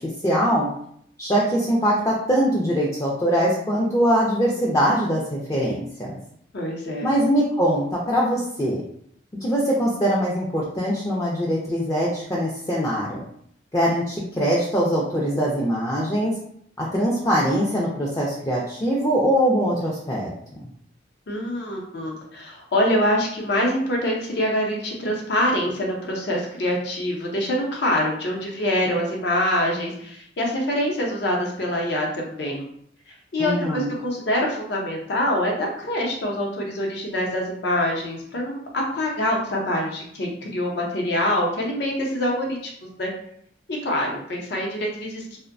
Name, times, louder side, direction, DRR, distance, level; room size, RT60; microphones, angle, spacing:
voice 1, 0.2-0.7 1.2-6.2 7.0-8.8 9.4-13.2 13.7-16.3 16.8-20.3 20.6-20.7 33.4-33.9, equal, 20° left, -6 dB, 0.4 m, -22 dB
voice 2, 6.5-7.1 21.3-32.6 33.1-43.1 43.7-45.3, left 1 dB, 65° left, -1 dB, 0.6 m, -25 dB
2.6 x 2.1 x 2.5 m, 0.67 s
head